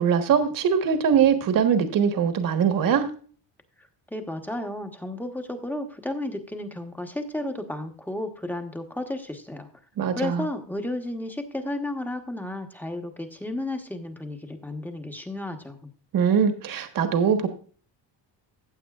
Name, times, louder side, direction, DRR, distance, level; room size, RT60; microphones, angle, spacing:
voice 1, 0.0-3.1 10.0-10.4 16.1-17.5, right 7 dB, 50° right, 8 dB, 1.3 m, -22 dB
voice 2, 3.8-9.7 10.2-15.9, left 1 dB, 5° left, 5 dB, 1.0 m, -33 dB
15.0 x 8.5 x 2.4 m, 0.41 s
cardioid pair, 160°, 42 cm